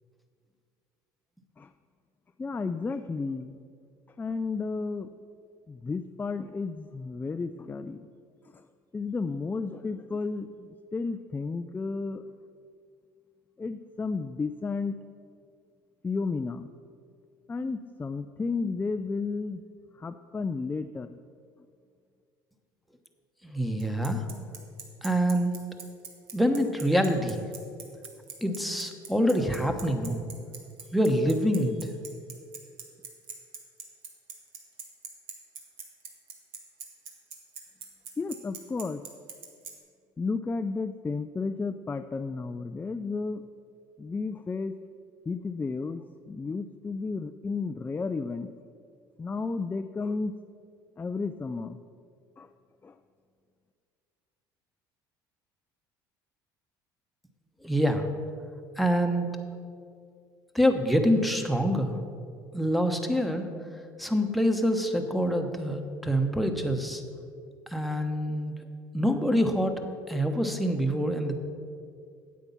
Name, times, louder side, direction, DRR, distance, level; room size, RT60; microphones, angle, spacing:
voice 1, 2.4-3.6 4.2-5.1 5.7-8.0 8.5-8.7 8.9-12.2 13.6-15.0 16.0-16.7 17.5-19.6 20.0-21.2 38.2-39.0 40.2-43.4 44.0-44.7 45.3-48.5 49.2-50.3 51.0-51.8 52.4-52.5 52.8-52.9, left 4 dB, 15° left, 9 dB, 0.4 m, -32 dB
voice 2, 23.4-24.3 25.0-25.5 26.3-27.4 28.4-30.2 30.9-31.9 57.6-58.1 58.8-59.3 60.5-62.0 62.5-63.5 64.0-67.0 67.7-68.5 68.9-69.7 70.1-71.3, equal, ahead, 4 dB, 1.1 m, -26 dB
Bicycle, 23.8-39.7, right 7 dB, 65° right, 1.6 m, -41 dB
8.9 x 8.2 x 5.7 m, 2.3 s
hypercardioid pair, 70°, 11 cm